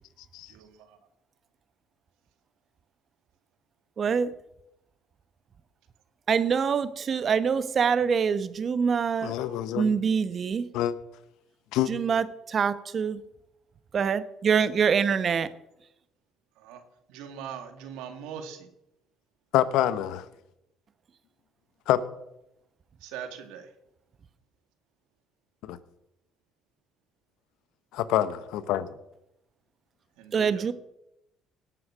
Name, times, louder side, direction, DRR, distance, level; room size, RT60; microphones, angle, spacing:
voice 1, 0.5-1.0 9.5-9.6 16.6-16.8 17.1-18.7 23.0-23.7 30.2-30.7, right 8 dB, 85° right, 2.0 m, -41 dB
voice 2, 4.0-4.3 6.3-9.3 9.8-10.6 11.9-13.2 13.9-15.5 30.3-30.7, right 6 dB, 45° right, 1.1 m, -25 dB
voice 3, 9.2-9.9 10.7-10.9 11.7-11.9 19.5-20.2 21.9-22.0 25.6-25.8 27.9-28.9, left 12 dB, 80° left, 1.0 m, -26 dB
18.0 x 7.7 x 6.2 m
supercardioid pair, 70°, 0 cm